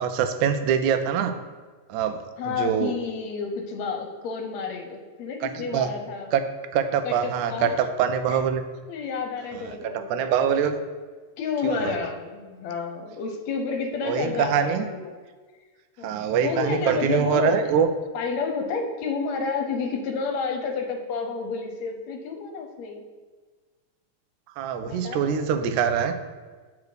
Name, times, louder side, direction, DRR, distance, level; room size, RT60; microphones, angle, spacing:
voice 1, 0.0-1.3 1.9-2.2 2.4-2.9 5.4-5.9 6.3-6.4 6.7-8.6 9.5-10.8 11.6-12.0 14.0-14.8 16.0-17.9 24.6-26.1, right 8 dB, 90° right, 8 dB, 2.1 m, -24 dB
voice 2, 2.4-6.3 7.0-7.7 8.3-8.4 8.9-10.2 11.4-15.1 16.0-17.7 18.1-23.0 24.9-25.4, left 5 dB, 75° left, 5 dB, 1.9 m, -30 dB
8.3 x 4.9 x 4.9 m, 1.4 s
omnidirectional pair, 3.4 m